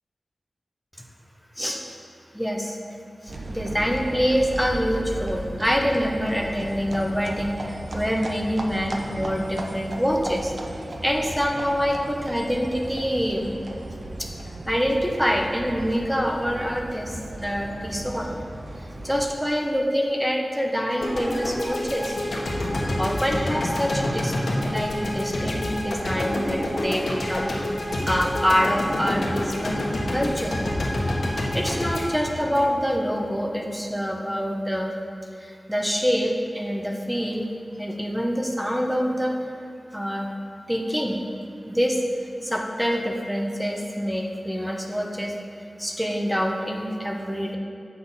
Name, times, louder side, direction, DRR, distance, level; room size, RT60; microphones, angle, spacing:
voice 1, 2.3-2.8 3.2-10.5 11.0-13.6 14.2-14.3 14.7-18.3 19.0-22.1 23.0-27.8 28.1-30.6 31.5-34.9 35.3-37.5 37.8-39.4 39.9-40.3 40.7-41.2 41.7-42.0 42.4-45.3 45.8-47.6, equal, 5° right, 0 dB, 0.9 m, -26 dB
sound 1, 3.3-19.3, right 1 dB, 60° right, 0.7 m, -36 dB
sound 2, 21.0-33.2, left 1 dB, 80° left, 1.2 m, -27 dB
8.3 x 5.7 x 4.1 m, 2.6 s
wide cardioid pair, 90°, 0 cm